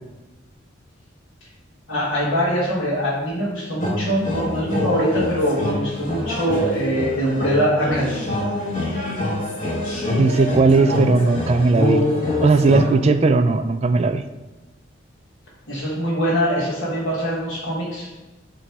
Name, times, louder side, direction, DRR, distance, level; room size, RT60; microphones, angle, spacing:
voice 1, 1.9-8.3 15.7-18.1, equal, 70° left, -7 dB, 1.6 m, -23 dB
sound 1, 3.8-12.9, left 1 dB, 45° left, 1.7 m, -25 dB
voice 2, 10.2-12.1 12.4-14.2, right 3 dB, 30° right, 9 dB, 0.3 m, -17 dB
8.6 x 3.1 x 4.7 m, 1.1 s
head